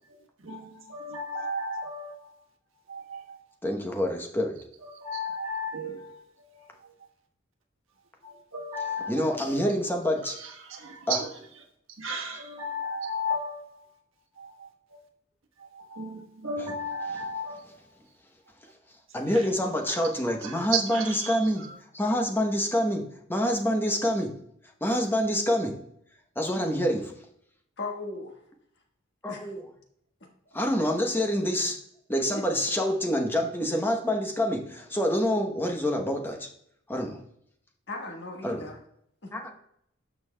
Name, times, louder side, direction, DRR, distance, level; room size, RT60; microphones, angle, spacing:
voice 1, 0.1-2.3 2.9-3.4 4.8-6.9 8.2-9.7 10.2-11.3 12.0-13.9 14.4-15.1 15.6-17.6 19.3-19.5 19.9-20.1 20.4-21.8, equal, 80° right, 1 dB, 1.2 m, -35 dB
voice 2, 3.6-4.6 9.1-10.4 11.1-11.2 19.1-21.7 21.9-24.3 24.8-25.8 26.4-27.1 29.2-29.6 30.5-31.8 32.1-36.5 36.9-37.2 38.4-38.6 39.3-39.5, equal, 10° left, 2 dB, 0.9 m, -27 dB
voice 3, 27.8-28.4 29.3-29.5 30.5-30.6 32.3-32.4 37.9-38.8 39.2-39.5, left 2 dB, 60° left, 2 dB, 1.4 m, -37 dB
12.5 x 5.5 x 2.2 m, 0.70 s
head